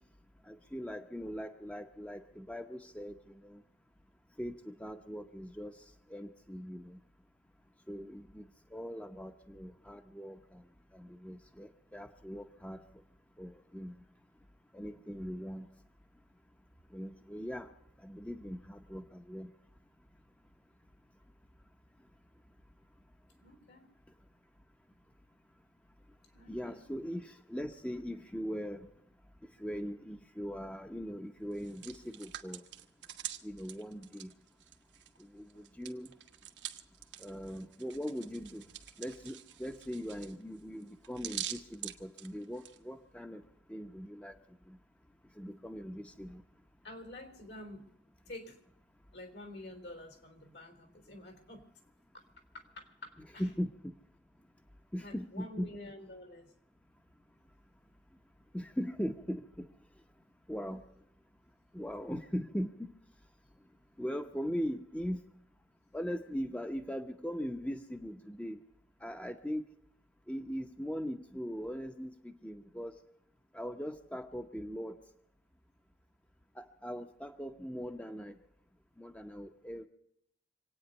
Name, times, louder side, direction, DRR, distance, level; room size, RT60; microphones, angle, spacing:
voice 1, 0.5-3.6 4.4-5.7 6.1-7.0 7.9-10.6 10.9-12.8 13.4-13.9 14.7-15.7 16.9-17.7 18.0-19.5 26.5-28.9 29.6-32.6 33.4-34.3 35.3-36.1 37.2-38.6 39.0-43.4 43.7-44.4 44.7-44.8 45.4-46.4 53.4-53.9 54.9-55.7 58.5-59.7 60.5-60.8 61.7-62.7 64.0-65.2 65.9-68.6 69.0-69.6 70.3-72.9 73.5-75.0 76.6-78.4 79.0-79.9, equal, 5° left, 6 dB, 0.8 m, -40 dB
voice 2, 23.4-23.9 26.3-26.9 46.8-47.9 48.3-48.6 49.1-51.7 52.1-52.2 52.5-53.5 55.0-56.5, left 1 dB, 70° left, 6 dB, 3.7 m, -49 dB
Hands, 31.5-35.2 35.5-42.8, right 11 dB, 80° right, 1.3 m, -45 dB
26.5 x 9.2 x 5.3 m, 0.76 s
head